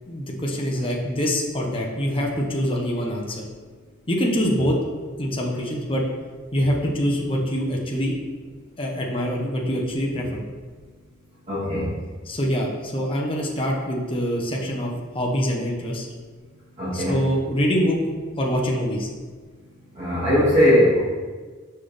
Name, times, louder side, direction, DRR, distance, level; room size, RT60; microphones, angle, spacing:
voice 1, 0.1-3.4 4.1-4.8 5.2-6.0 6.5-8.1 8.8-10.4 12.3-16.1 16.9-18.0 18.4-19.1, equal, 30° left, -1 dB, 0.9 m, -24 dB
voice 2, 11.5-11.9 16.8-17.2 19.9-21.0, equal, 35° right, -12 dB, 1.9 m, -19 dB
6.0 x 5.6 x 3.3 m, 1.5 s
head